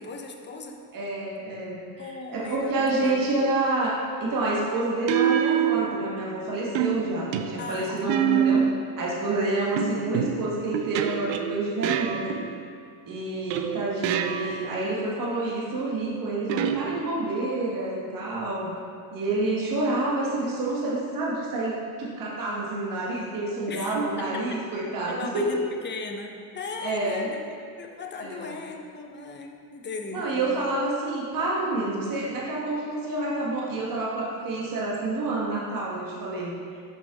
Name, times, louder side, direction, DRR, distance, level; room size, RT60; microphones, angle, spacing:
voice 1, 0.0-0.8 2.0-3.3 7.6-8.3 23.7-24.6 25.1-27.4 27.8-30.3, left 4 dB, 25° left, 2 dB, 0.6 m, -37 dB
voice 2, 0.9-8.7 9.0-12.4 13.1-18.7 19.1-25.6 26.8-27.3 28.2-28.5 30.1-36.6, right 2 dB, 45° right, -4 dB, 1.4 m, -28 dB
sound 1, 3.0-3.3 5.1-6.3 6.7-8.9 9.8-12.8 13.5-14.8 16.5-17.4, right 9 dB, 65° right, 0.5 m, -27 dB
6.4 x 5.8 x 3.5 m, 2.3 s
cardioid pair, 110°, 47 cm